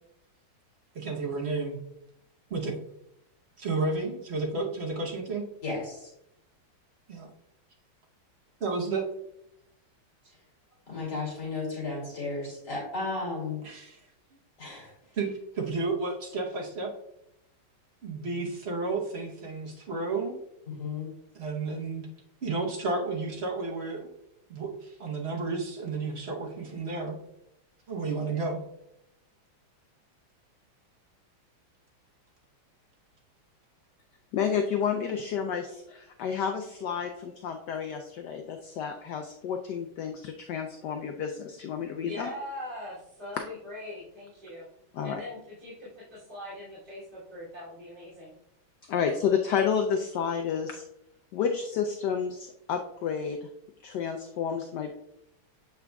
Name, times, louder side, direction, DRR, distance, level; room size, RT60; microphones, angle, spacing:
voice 1, 0.9-1.8 2.5-2.8 3.6-5.4 7.1-7.3 8.6-9.0 13.6-14.0 15.2-16.9 18.0-20.3 21.3-22.1 22.4-24.1 24.5-27.2 27.9-28.6, right 3 dB, 50° right, -2 dB, 0.8 m, -32 dB
voice 2, 5.6-6.1 10.9-13.6 14.6-14.9 20.7-21.1, left 3 dB, 50° left, -5 dB, 3.1 m, -34 dB
voice 3, 34.3-42.3 44.9-45.2 48.9-50.8 51.3-53.4 53.8-54.9, left 7 dB, 75° left, 5 dB, 1.0 m, -30 dB
voice 4, 42.0-44.7 45.0-48.3, left 1 dB, 25° right, -11 dB, 2.6 m, -41 dB
7.8 x 5.8 x 2.3 m, 0.81 s
omnidirectional pair, 2.3 m